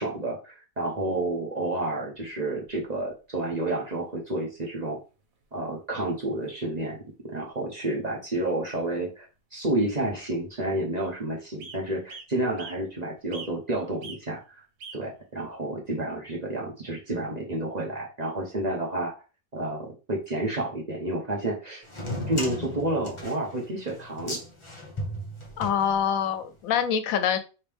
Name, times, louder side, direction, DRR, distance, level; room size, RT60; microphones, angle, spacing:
voice 1, 0.0-5.0 5.5-7.0 7.3-9.3 9.5-14.6 14.9-19.1 19.5-21.9 22.3-24.4, right 1 dB, 35° right, -1 dB, 0.9 m, -30 dB
sound 1, 2.1-3.1 4.2-4.3 4.6-4.7 5.3-5.6 5.9-6.0 6.3-6.5 6.9-7.1 8.0-8.1 8.5-8.6 9.7-9.8 10.1-10.5 11.0-11.1 11.6-11.8 12.1-12.8 13.3-13.7 14.0-14.2 14.8-15.0 15.7-15.8, right 4 dB, 75° right, 1.3 m, -43 dB
sound 2, 21.9-26.4, left 1 dB, 25° left, 0.9 m, -36 dB
voice 2, 25.6-27.4, left 8 dB, 75° left, 10 dB, 1.0 m, -25 dB
5.1 x 2.8 x 3.5 m, 0.33 s
omnidirectional pair, 1.5 m